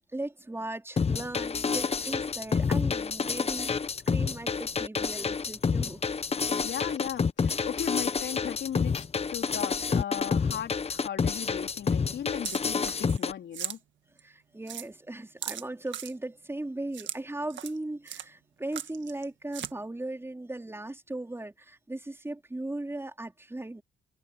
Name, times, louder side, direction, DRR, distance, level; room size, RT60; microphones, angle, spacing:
voice 1, 0.1-3.7 4.1-6.0 14.2-23.8, right 2 dB, 10° right, 4.5 m, -38 dB
sound 1, 1.0-13.3, left 5 dB, 30° left, 1.0 m, -28 dB
voice 2, 6.6-9.1 9.3-13.8, left 9 dB, 65° left, 3.9 m, -37 dB
sound 2, 12.4-13.2 13.5-13.8 14.2-14.3 14.7-14.9 15.4-16.1 16.9-17.2 17.5-17.8 18.1-18.3 18.7-19.2 19.5-19.7, right 10 dB, 70° right, 1.8 m, -38 dB
cardioid pair, 90°, 20 cm